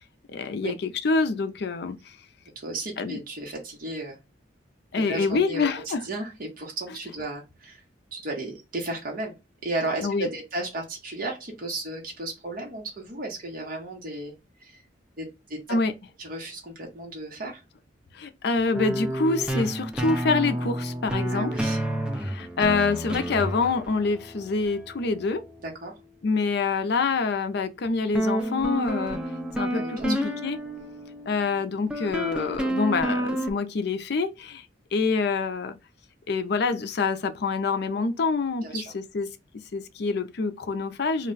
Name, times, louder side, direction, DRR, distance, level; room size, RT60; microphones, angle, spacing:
voice 1, 0.3-2.0 3.0-3.2 4.9-6.0 10.0-10.3 15.7-15.9 18.1-21.5 22.1-25.4 26.2-29.2 29.5-30.6 31.3-34.7 34.9-35.8 36.3-39.3 39.7-41.3, left 4 dB, 60° left, 0.5 m, -26 dB
voice 2, 2.6-4.2 4.9-7.8 8.1-9.4 9.6-14.3 14.6-14.8 15.2-15.6 16.2-17.6 21.3-21.8 22.7-22.8 25.6-25.9 29.7-30.1 38.6-38.9, right 2 dB, 50° right, 1.0 m, -34 dB
sound 1, 18.7-26.0 28.1-33.5, right 1 dB, 5° right, 0.4 m, -30 dB
2.3 x 2.2 x 3.8 m
head